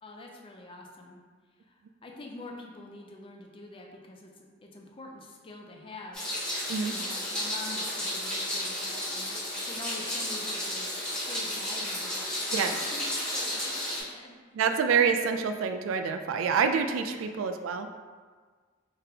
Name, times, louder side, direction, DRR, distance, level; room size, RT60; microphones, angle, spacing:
voice 1, 0.0-1.2 1.6-6.6 6.8-9.3 9.6-10.9 11.3-14.6 17.3-17.6, left 2 dB, 25° left, 1 dB, 0.5 m, -46 dB
Meow, 6.1-14.0, left 1 dB, 5° left, 1.2 m, -33 dB
voice 2, 14.5-17.9, right 6 dB, 85° right, 7 dB, 0.3 m, -27 dB
3.9 x 3.4 x 2.8 m, 1.5 s
head